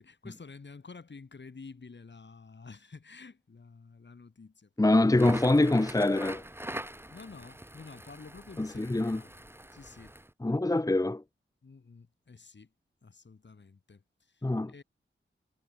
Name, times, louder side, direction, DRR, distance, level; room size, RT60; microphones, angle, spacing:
voice 1, 0.0-5.1 7.1-10.1 11.6-12.7 13.0-14.8, left 4 dB, 60° left, 5.8 m, -50 dB
voice 2, 4.8-6.4 8.6-9.2 10.4-11.2 14.4-14.8, left 2 dB, 15° left, 1.0 m, -25 dB
Crackle, 5.1-10.3, right 1 dB, 10° right, 7.0 m, -42 dB
wide cardioid pair, 75°, 21 cm